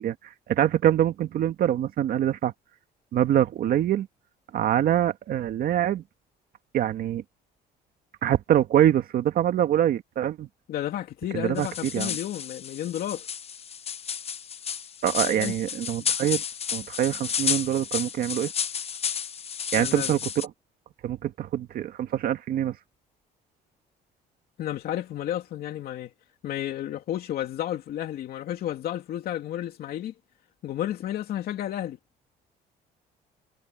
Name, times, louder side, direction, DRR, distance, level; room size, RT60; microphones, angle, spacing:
voice 1, 0.0-2.5 3.1-4.1 4.5-6.0 6.7-7.2 8.2-10.5 11.3-12.1 15.0-16.4 16.7-18.5 19.7-20.5 21.0-22.8, right 11 dB, 60° right, 1.9 m, -24 dB
voice 2, 10.7-13.3 15.2-15.5 16.0-16.1 19.8-20.1 24.6-26.1 26.4-30.1 30.6-32.0, left 12 dB, 65° left, 2.7 m, -32 dB
sound 1, 11.6-20.5, left 7 dB, 35° left, 0.9 m, -32 dB
cardioid pair, 110°, 17 cm